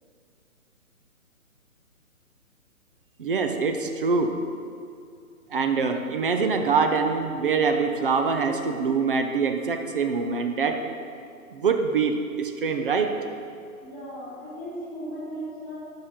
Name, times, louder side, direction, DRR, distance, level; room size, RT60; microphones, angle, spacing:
voice 1, 3.2-4.4 5.5-10.8 11.5-13.1, right 5 dB, 40° right, 6 dB, 0.6 m, -24 dB
voice 2, 13.8-15.8, equal, ahead, -17 dB, 1.8 m, -36 dB
5.6 x 5.5 x 6.5 m, 2.3 s
hypercardioid pair, 150°, 43 cm